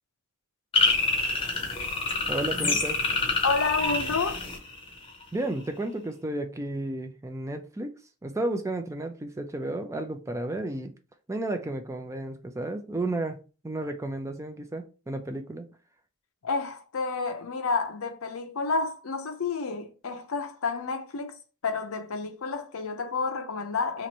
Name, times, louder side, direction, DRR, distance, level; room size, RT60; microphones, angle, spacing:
sound 1, 0.7-5.2, left 3 dB, 25° left, 0.7 m, -27 dB
voice 1, 2.3-3.0 5.3-7.9 8.2-10.9 11.3-15.6, right 2 dB, 15° right, 0.4 m, -32 dB
voice 2, 3.4-4.4 16.4-21.4 21.6-24.1, left 4 dB, 80° left, 0.6 m, -30 dB
3.0 x 2.5 x 4.1 m
head